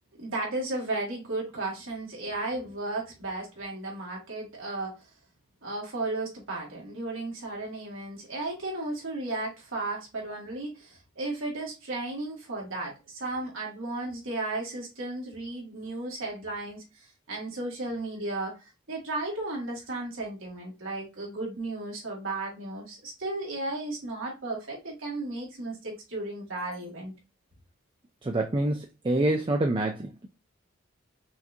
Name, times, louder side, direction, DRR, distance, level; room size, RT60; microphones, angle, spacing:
voice 1, 0.2-5.0 5.6-16.8 17.3-18.6 18.9-27.1, right 2 dB, 90° right, 2.0 m, -34 dB
voice 2, 28.2-30.3, right 1 dB, 25° right, 0.4 m, -27 dB
5.8 x 2.5 x 2.6 m
head